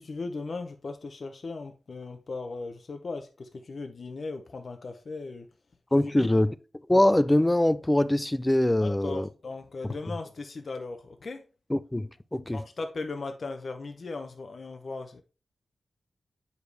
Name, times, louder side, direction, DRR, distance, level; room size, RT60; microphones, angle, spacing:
voice 1, 0.0-5.5 6.0-6.3 8.8-11.4 12.5-15.2, left 3 dB, 55° left, 0.7 m, -37 dB
voice 2, 5.9-6.5 6.9-9.3 9.8-9.9 11.7-12.6, left 1 dB, 15° left, 0.4 m, -23 dB
8.0 x 5.1 x 3.3 m
wide cardioid pair, 90°, 0 cm